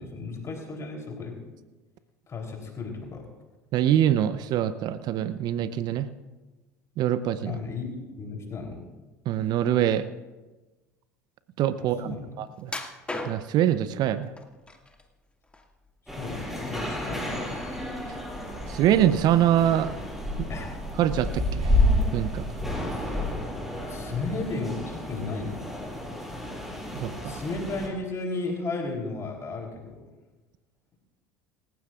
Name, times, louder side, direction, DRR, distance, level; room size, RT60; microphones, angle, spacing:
voice 1, 0.0-1.4 2.3-3.3 7.4-8.8 11.8-12.3 16.1-17.6 20.5-20.7 23.9-25.7 27.2-30.0, left 3 dB, 35° left, 1 dB, 3.5 m, -34 dB
voice 2, 3.7-6.1 7.0-7.6 9.3-10.1 11.6-12.7 13.2-14.3 18.7-19.9 20.4-20.5 21.0-21.8 22.1-22.4 26.9-27.4, right 11 dB, 50° right, 13 dB, 0.8 m, -24 dB
sound 1, 12.7-13.7 14.4-15.0 15.4-16.4 16.7-16.9 17.4-17.5, left 2 dB, 10° left, 2.2 m, -36 dB
sound 2, 16.1-27.9, left 1 dB, 5° right, 5.9 m, -30 dB
26.5 x 15.0 x 2.5 m, 1.2 s
hypercardioid pair, 70°, 9 cm